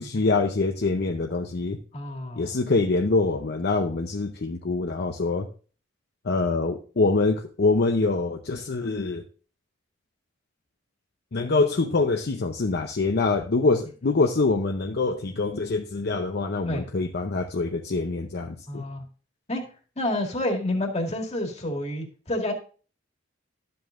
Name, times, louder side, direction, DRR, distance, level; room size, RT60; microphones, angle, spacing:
voice 1, 0.0-1.8 2.4-5.5 6.2-9.2 11.3-18.8, left 3 dB, 55° left, 3 dB, 0.7 m, -25 dB
voice 2, 1.9-2.5 16.6-16.9 18.7-19.0 19.5-19.6 20.0-22.5, left 1 dB, 35° left, 2 dB, 2.0 m, -29 dB
12.0 x 7.8 x 2.5 m, 0.38 s
head